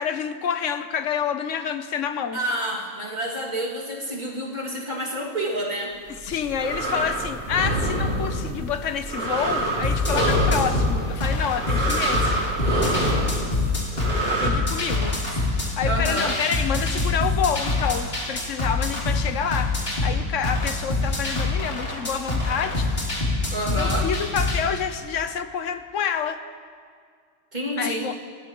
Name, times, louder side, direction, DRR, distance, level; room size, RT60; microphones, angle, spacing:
voice 1, 0.0-2.4 6.2-12.4 14.3-15.2 15.6-23.1 23.7-26.4 27.8-28.1, left 7 dB, 75° left, 10 dB, 1.1 m, -28 dB
voice 2, 2.3-5.9 14.7-15.4 15.8-16.4 23.5-24.1 27.5-28.1, right 1 dB, 35° right, -3 dB, 2.5 m, -29 dB
sound 1, 6.1-14.5, right 1 dB, 50° right, 2.8 m, -26 dB
sound 2, 9.8-24.6, left 3 dB, 50° left, 3.4 m, -25 dB
29.5 x 15.0 x 3.0 m, 2.1 s
omnidirectional pair, 1.3 m